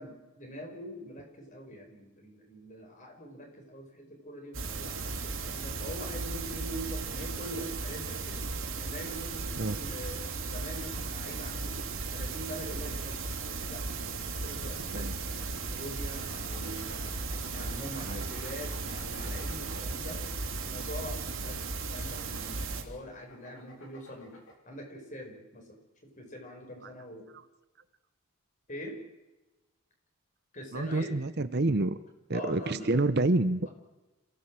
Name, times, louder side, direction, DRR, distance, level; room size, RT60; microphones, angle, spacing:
voice 1, 0.0-8.5 8.8-10.2 10.5-11.8 12.1-17.1 17.5-20.2 20.6-24.4 24.7-27.3 28.7-29.0 30.5-31.1 32.3-33.0, equal, 35° left, 3 dB, 5.4 m, -43 dB
sound 1, 4.5-22.8, right 3 dB, 70° right, 3.0 m, -36 dB
sound 2, 16.0-20.9 21.5-24.6, left 1 dB, 60° left, 4.2 m, -53 dB
voice 2, 18.0-18.3 19.7-19.8 30.7-32.0 32.3-33.7, right 2 dB, 50° right, 12 dB, 0.8 m, -28 dB
27.0 x 16.5 x 7.6 m, 1.1 s
head